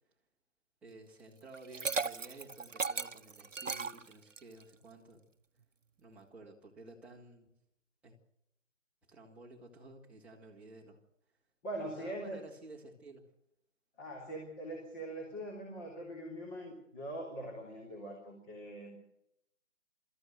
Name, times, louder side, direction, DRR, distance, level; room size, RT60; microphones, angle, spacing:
voice 1, 0.8-5.2 6.0-7.5 8.0-8.2 9.1-11.0 11.8-13.2, right 2 dB, 5° right, -5 dB, 2.2 m, -53 dB
Liquid, 1.5-4.6, right 4 dB, 85° right, 1.0 m, -36 dB
voice 2, 11.6-12.4 14.0-19.0, right 1 dB, 15° left, -1 dB, 3.4 m, -42 dB
24.0 x 14.0 x 7.7 m, 0.81 s
figure-of-eight pair, 150°, 37 cm